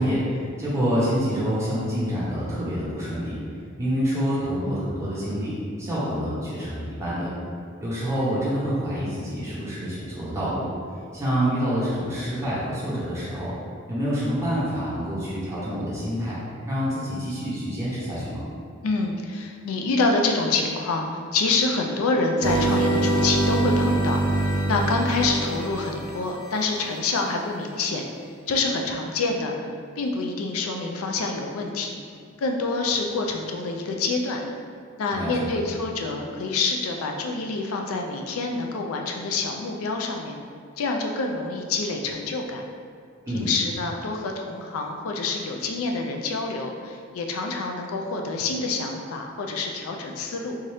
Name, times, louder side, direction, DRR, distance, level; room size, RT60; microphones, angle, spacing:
voice 1, 0.0-3.4 3.8-7.3 7.8-10.7 11.1-13.5 13.9-16.4 16.7-18.4 35.1-35.5 43.3-43.5, equal, 15° right, -9 dB, 1.0 m, -27 dB
voice 2, 18.8-28.0 28.5-29.5 30.0-32.0 32.4-34.4 35.0-40.3 40.8-42.6 43.3-50.6, left 3 dB, 85° left, 2 dB, 0.4 m, -27 dB
sound 1, 22.4-26.7, right 2 dB, 40° right, 0.5 m, -24 dB
3.6 x 2.7 x 3.3 m, 2.2 s
head